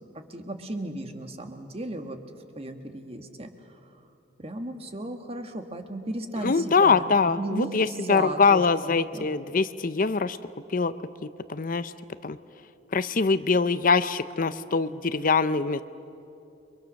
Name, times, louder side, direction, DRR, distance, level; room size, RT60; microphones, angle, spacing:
voice 1, 0.1-2.2 2.5-4.0 4.4-7.0 7.4-9.3, right 1 dB, 30° right, 6 dB, 1.6 m, -35 dB
voice 2, 6.4-10.4 10.7-10.9 11.5-11.9 12.2-12.4 12.9-15.8, left 4 dB, 40° left, 13 dB, 0.6 m, -23 dB
29.5 x 24.0 x 6.4 m, 2.8 s
head